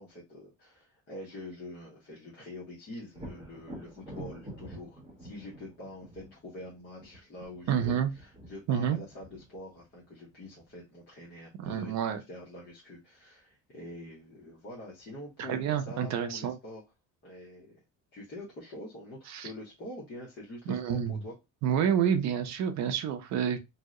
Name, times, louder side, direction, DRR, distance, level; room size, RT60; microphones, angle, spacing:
voice 1, 0.0-16.8 17.2-17.8 18.1-21.4, left 1 dB, 35° left, 0.8 m, -45 dB
Thunder, 3.1-10.8 14.4-14.5 15.0-15.9, right 1 dB, 10° right, 0.9 m, -48 dB
voice 2, 7.7-8.1 8.7-9.0 11.6-12.2 15.4-16.6 19.3-19.5 20.7-21.2 21.6-23.6, right 8 dB, 60° right, 0.5 m, -28 dB
2.7 x 2.1 x 3.5 m
cardioid pair, 170°, 32 cm